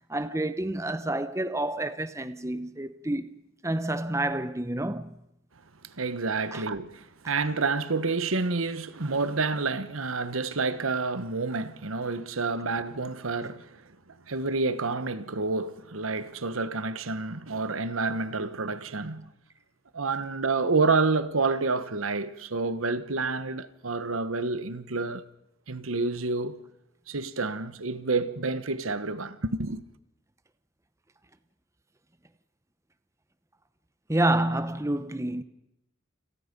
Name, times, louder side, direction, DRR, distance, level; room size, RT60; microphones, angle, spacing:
voice 1, 0.1-5.2 6.5-6.6 34.1-35.4, right 1 dB, 15° right, 0.8 m, -29 dB
voice 2, 5.8-13.8 14.3-19.3 19.9-25.2 25.7-26.6 27.1-29.8, right 3 dB, 85° right, 1.3 m, -29 dB
29.0 x 27.0 x 5.4 m
head